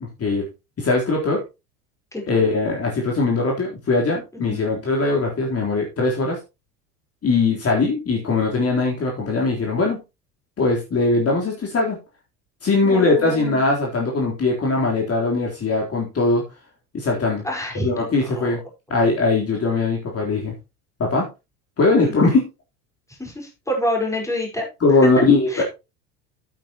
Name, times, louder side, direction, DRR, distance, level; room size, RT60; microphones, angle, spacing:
voice 1, 0.8-1.4 2.3-6.4 7.2-10.0 10.6-12.0 12.6-16.4 16.9-17.4 17.8-18.6 18.9-20.6 21.0-21.3 21.8-22.5 24.8-25.6, left 3 dB, 30° left, -1 dB, 3.9 m, -20 dB
voice 2, 2.1-2.4 4.3-4.6 12.8-13.5 17.4-18.1 18.3-18.5 22.0-22.3 23.2-24.7 25.0-25.6, left 1 dB, 5° left, 0 dB, 4.9 m, -28 dB
11.5 x 9.3 x 3.0 m, 0.25 s
hypercardioid pair, 80°, 47 cm